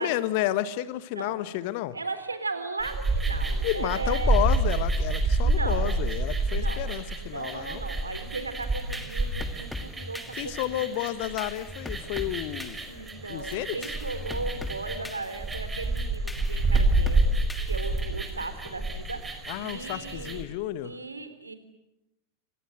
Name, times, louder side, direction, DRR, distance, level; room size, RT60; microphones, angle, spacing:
voice 1, 0.0-2.0 3.6-7.8 10.4-12.8 13.3-13.8 19.5-20.9, left 14 dB, 50° left, 14 dB, 1.7 m, -31 dB
voice 2, 1.9-4.5 5.4-6.0 6.4-11.0 12.9-17.3 17.7-20.4 20.8-21.5, right 3 dB, 80° right, 11 dB, 3.7 m, -37 dB
sound 1, 2.8-20.4, right 2 dB, 15° right, 5.0 m, -28 dB
sound 2, 8.6-18.3, left 2 dB, 5° left, 3.0 m, -40 dB
28.5 x 25.5 x 8.0 m, 0.89 s
figure-of-eight pair, 90°, 0 cm